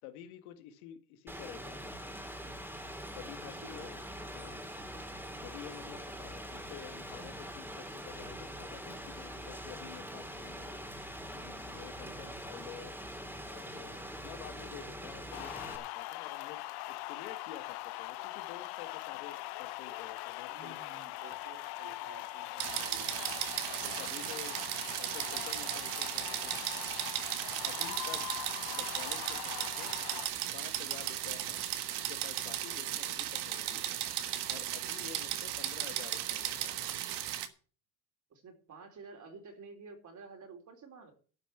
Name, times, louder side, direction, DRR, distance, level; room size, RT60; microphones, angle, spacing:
voice 1, 0.0-2.0 3.1-4.0 4.3-4.7 5.4-13.0 13.5-21.1 23.8-26.6 27.6-28.3 28.7-29.9 30.5-31.7 31.9-36.9, left 11 dB, 85° left, 8 dB, 2.0 m, -50 dB
Rain, 1.3-15.8, equal, 5° right, 2.8 m, -44 dB
voice 2, 3.5-4.1 12.0-12.4 14.6-15.0 20.5-23.3 31.4-31.7 38.3-41.1, right 4 dB, 45° right, 4 dB, 3.9 m, -52 dB
sound 1, 15.3-30.3, left 18 dB, 65° left, 0.8 m, -42 dB
sound 2, 22.6-37.5, right 12 dB, 65° right, 1.6 m, -36 dB
12.5 x 6.0 x 7.8 m, 0.41 s
supercardioid pair, 100°, 42 cm